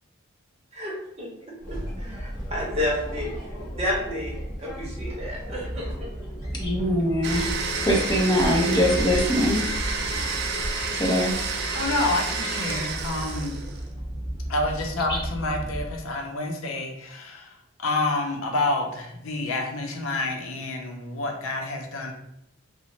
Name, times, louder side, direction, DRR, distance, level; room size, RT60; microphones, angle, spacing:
voice 1, 0.7-3.3 3.7-6.1 7.4-7.7, left 1 dB, 30° right, -3 dB, 0.7 m, -31 dB
sound 1, 1.6-15.9, equal, 35° left, 1.3 m, -34 dB
voice 2, 6.5-7.5 7.8-9.6 10.9-11.3 15.1-15.2, equal, 20° left, -1 dB, 0.6 m, -22 dB
Domestic sounds home sounds, 7.2-13.9, right 4 dB, 55° right, 0.4 m, -30 dB
voice 3, 11.7-13.6 14.5-22.1, left 2 dB, 80° left, 3 dB, 0.5 m, -28 dB
2.9 x 2.0 x 3.0 m, 0.80 s
head